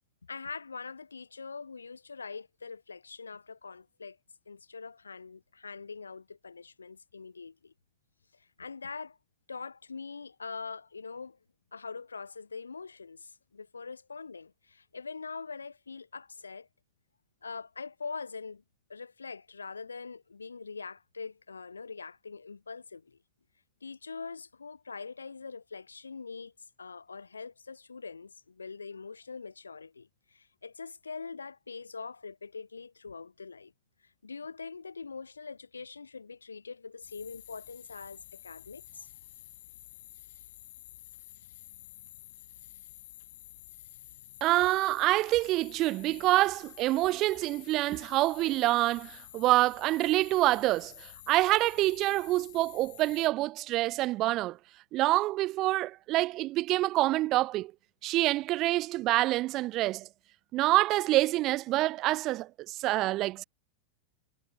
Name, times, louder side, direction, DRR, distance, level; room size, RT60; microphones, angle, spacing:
voice 1, 0.3-4.2 4.5-7.7 8.4-9.2 9.5-11.4 11.7-16.7 17.4-18.6 18.9-23.2 23.8-26.5 26.8-33.7 34.0-39.1, left 4 dB, 75° left, 2.2 m, -43 dB
sound 1, 37.0-53.3, left 15 dB, 55° left, 1.8 m, -51 dB
voice 2, 44.4-50.9 51.3-54.6 54.9-57.7 58.0-60.1 60.5-63.4, right 17 dB, 35° right, 0.4 m, -26 dB
figure-of-eight pair, 90°, 0 cm